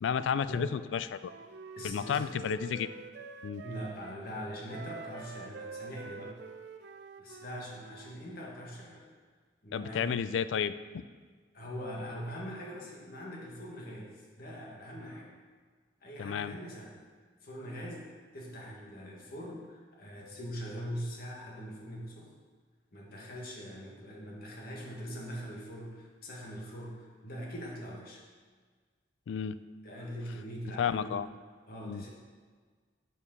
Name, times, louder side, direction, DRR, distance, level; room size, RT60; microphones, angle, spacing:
voice 1, 0.0-1.3 1.8-2.9 3.4-3.6 9.7-11.0 16.2-16.6 29.3-29.6 30.8-31.3 31.8-32.0, left 7 dB, 85° left, 14 dB, 0.3 m, -32 dB
Wind instrument woodwind instrument, 1.2-4.2 4.7-8.2, right 5 dB, 65° right, 0.5 m, -47 dB
voice 2, 1.8-2.3 3.6-6.3 7.2-9.0 9.6-10.3 11.5-14.1 14.4-15.3 16.0-17.0 17.4-18.0 18.3-22.3 22.9-28.2 29.8-31.1 31.7-32.1, equal, 55° left, -2 dB, 1.7 m, -42 dB
6.4 x 5.7 x 5.4 m, 1.5 s
head